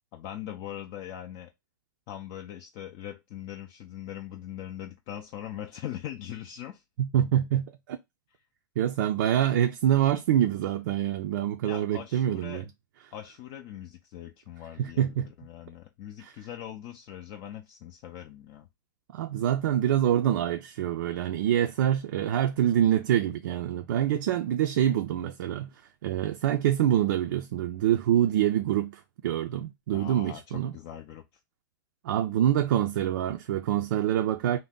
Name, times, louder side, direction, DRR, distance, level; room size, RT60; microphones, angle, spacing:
voice 1, 0.1-1.5 2.1-6.8 11.6-12.7 13.1-18.7 29.9-31.2, left 11 dB, 40° left, 0.4 m, -41 dB
voice 2, 7.0-8.0 8.8-12.6 14.8-15.3 16.2-16.3 19.1-25.7 26.0-30.7 32.0-34.6, right 11 dB, 65° right, 0.4 m, -26 dB
2.7 x 2.0 x 3.5 m
hypercardioid pair, 130°, 11 cm